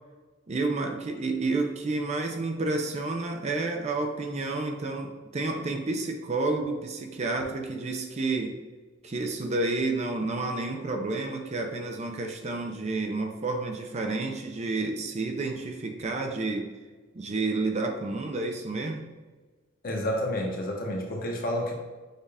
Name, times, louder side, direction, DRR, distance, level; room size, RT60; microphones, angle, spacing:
voice 1, 0.5-8.6 9.0-16.7 17.1-19.0, right 3 dB, 35° right, 4 dB, 0.5 m, -30 dB
voice 2, 19.8-21.7, left 1 dB, 50° left, 0 dB, 0.8 m, -29 dB
6.5 x 2.4 x 3.4 m, 1.3 s
head